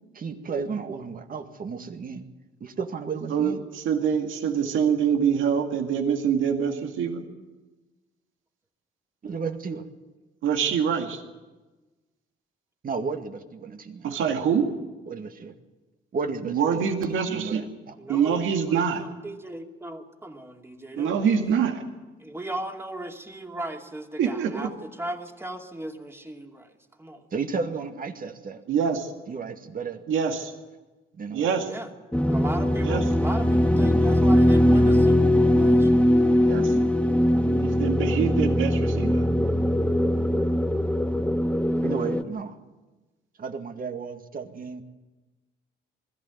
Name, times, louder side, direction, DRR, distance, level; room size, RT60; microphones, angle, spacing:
voice 1, 0.1-2.2 2.6-3.7 9.2-9.9 12.8-14.3 15.1-15.5 16.1-18.0 27.3-28.6 29.3-30.0 31.1-31.7 41.8-42.6 43.4-44.8, right 5 dB, 45° right, 6 dB, 2.0 m, -33 dB
voice 2, 3.9-7.2 10.4-11.2 14.0-14.7 16.5-17.6 18.1-19.0 21.0-21.8 24.2-24.5 28.7-29.1 30.1-30.5 31.3-31.6 32.8-33.0 36.4-36.7 37.6-39.2, right 7 dB, 80° right, 4 dB, 2.2 m, -25 dB
voice 3, 18.0-21.6 22.2-26.7 27.0-27.2 31.6-31.9 32.3-36.0, right 1 dB, 10° right, 2 dB, 2.5 m, -37 dB
sound 1, 32.1-42.2, left 1 dB, 5° left, 0.9 m, -21 dB
21.0 x 14.5 x 9.5 m, 1.2 s
cardioid pair, 90°, 20 cm